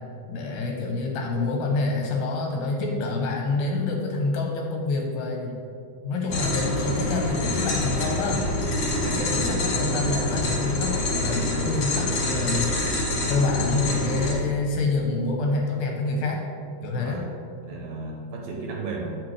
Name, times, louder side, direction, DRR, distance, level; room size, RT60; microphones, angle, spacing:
voice 1, 0.3-5.5 6.0-8.4 9.0-12.7 13.3-16.4 16.8-17.3, left 3 dB, 75° left, 0 dB, 2.3 m, -27 dB
sound 1, 6.3-14.3, left 1 dB, 60° left, 2.2 m, -26 dB
voice 2, 8.9-9.4 17.0-17.3 17.6-19.2, right 3 dB, 75° right, -1 dB, 2.4 m, -34 dB
8.8 x 6.3 x 3.3 m, 2.6 s
omnidirectional pair, 4.4 m